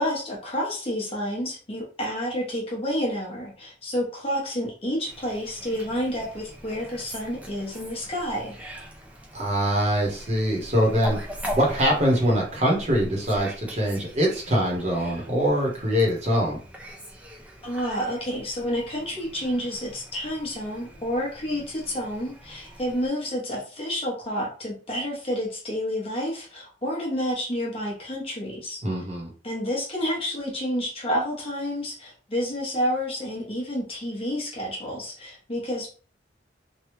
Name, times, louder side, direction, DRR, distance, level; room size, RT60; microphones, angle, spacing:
voice 1, 0.0-8.5 17.6-28.8 29.4-36.0, equal, 30° left, -3 dB, 1.0 m, -29 dB
Fowl, 5.1-23.1, equal, 10° right, 0.5 m, -41 dB
voice 2, 9.3-11.2 11.5-16.6 28.8-29.3, equal, 35° right, -2 dB, 1.0 m, -23 dB
3.3 x 2.3 x 3.0 m, 0.40 s
head